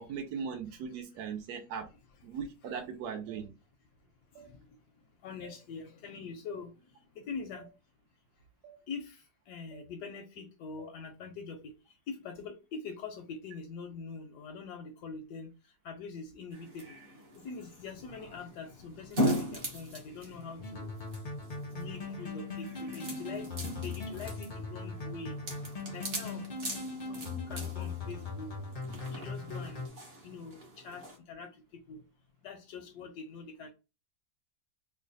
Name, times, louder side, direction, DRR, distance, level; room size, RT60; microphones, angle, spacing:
voice 1, 0.0-1.9 2.2-3.5, right 6 dB, 80° right, 4 dB, 1.1 m, -38 dB
sound 1, 3.3-3.4 4.3-4.5 5.4-5.6 6.5-6.6 7.6-7.7 8.6-8.8 9.7-9.9 10.8-10.9, right 9 dB, 60° right, 1.3 m, -53 dB
voice 2, 4.3-4.7 5.2-6.7 7.1-7.7 8.9-11.7 12.1-15.5 15.8-17.0 17.4-20.9 21.7-23.5 23.8-25.4 25.9-26.5 27.1-28.5 29.1-29.9 30.2-32.0 32.4-33.7, left 5 dB, 85° left, 4 dB, 1.2 m, -44 dB
sound 2, 16.5-31.2, equal, 40° right, 0.9 m, -40 dB
sound 3, 20.6-29.9, left 3 dB, 55° left, 0.5 m, -40 dB
3.1 x 2.1 x 3.9 m, 0.29 s
omnidirectional pair, 1.7 m